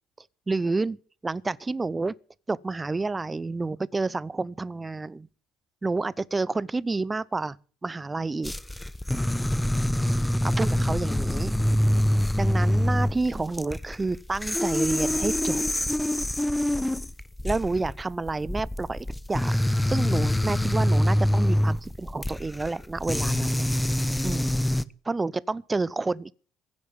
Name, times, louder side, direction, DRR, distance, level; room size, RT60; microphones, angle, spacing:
voice 1, 0.5-1.0 1.2-2.1 2.5-5.3 5.8-7.6 7.8-8.6 10.4-11.5 12.4-15.6 17.4-23.7 24.2-24.5 25.0-26.3, right 3 dB, 20° right, 0.7 m, -29 dB
sound 1, 8.4-24.8, left 1 dB, 10° left, 0.8 m, -25 dB
16.0 x 9.6 x 7.1 m
figure-of-eight pair, 55°, 0 cm